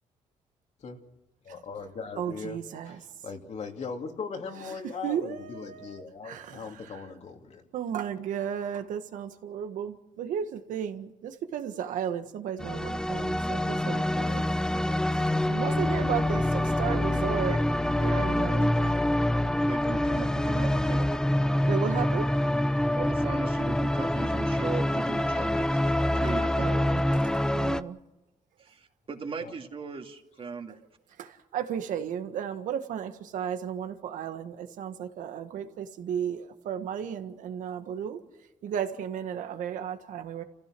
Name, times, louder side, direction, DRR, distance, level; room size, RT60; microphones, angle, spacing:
voice 1, 1.4-2.6 2.9-8.0 29.4-29.5, left 5 dB, 60° left, 3 dB, 3.1 m, -39 dB
voice 2, 2.2-3.0 5.0-7.0 7.7-14.4 15.5-17.6 17.9-18.7 21.7-22.3 26.6-28.0 31.2-38.2 38.6-40.4, right 8 dB, 90° right, 8 dB, 1.7 m, -34 dB
sound 1, 12.6-27.8, left 1 dB, 5° left, 0.8 m, -26 dB
voice 3, 16.6-17.4 18.0-18.3 18.7-19.2 19.6-21.1 21.6-21.7 22.9-26.8 28.6-30.8, right 5 dB, 45° right, 4 dB, 2.4 m, -39 dB
30.0 x 15.5 x 6.2 m, 1.0 s
cardioid pair, 95°, 13 cm